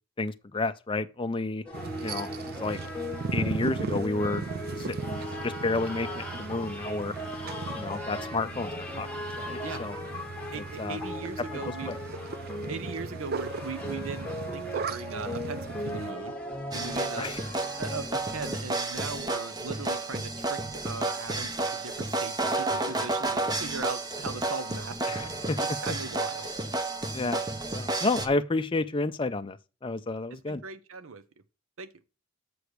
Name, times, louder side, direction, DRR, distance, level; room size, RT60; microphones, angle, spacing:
voice 1, 0.2-1.6 2.0-2.8 3.3-4.4 4.8-7.1 7.7-9.1 9.4-10.0 10.5-11.0 11.5-11.6 11.9-12.0 17.2-17.4 25.1-25.6 27.1-27.4 27.7-30.6, left 3 dB, 25° left, 0.5 m, -31 dB
sound 1, 1.6-18.6, left 1 dB, 5° left, 1.2 m, -38 dB
sound 2, 1.7-16.1, right 4 dB, 45° right, 0.4 m, -37 dB
voice 2, 10.5-12.0 12.7-16.3 16.7-26.5 30.3-31.2 31.8-31.9, right 4 dB, 70° right, 0.7 m, -39 dB
sound 3, 16.7-28.3, right 2 dB, 20° right, 0.7 m, -31 dB
7.0 x 4.9 x 6.4 m
head